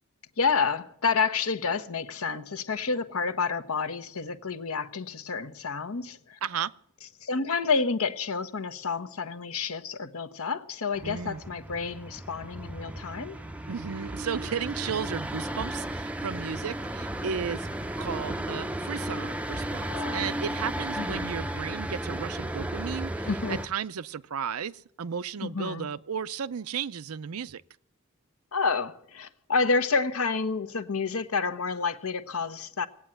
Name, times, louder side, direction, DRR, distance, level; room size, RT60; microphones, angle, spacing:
voice 1, 0.4-6.4 7.2-13.4 19.9-20.3 21.0-21.3 23.3-23.6 25.4-25.9 28.5-32.9, left 4 dB, 75° left, 1.0 m, -29 dB
voice 2, 6.4-6.7 11.0-11.4 13.7-17.7 18.0-27.6, right 7 dB, 80° right, 0.5 m, -34 dB
sound 1, 10.9-23.7, right 1 dB, 5° right, 0.5 m, -34 dB
18.0 x 8.7 x 9.1 m
head